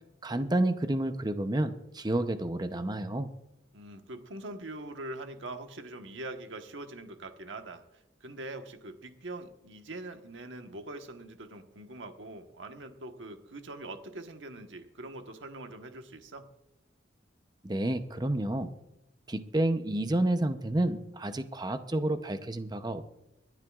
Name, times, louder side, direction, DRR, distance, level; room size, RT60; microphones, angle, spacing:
voice 1, 0.2-3.3 17.6-18.7 19.3-23.1, right 1 dB, 20° right, 9 dB, 0.7 m, -30 dB
voice 2, 3.7-7.8 8.2-16.5, right 2 dB, 80° right, 6 dB, 1.3 m, -43 dB
25.5 x 10.5 x 2.4 m, 0.91 s
head